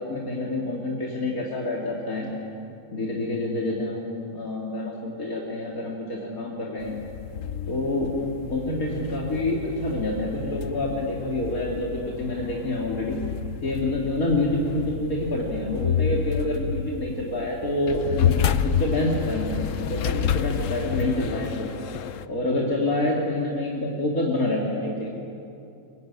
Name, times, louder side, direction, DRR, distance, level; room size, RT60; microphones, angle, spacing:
voice 1, 0.0-2.3 2.9-7.0 7.7-8.1 8.5-13.2 13.6-21.7 22.3-25.1, left 1 dB, 90° left, -3 dB, 3.3 m, -27 dB
sound 1, 6.8-22.2, left 8 dB, 70° left, 1.1 m, -29 dB
24.5 x 22.0 x 9.7 m, 2.6 s
omnidirectional pair, 1.5 m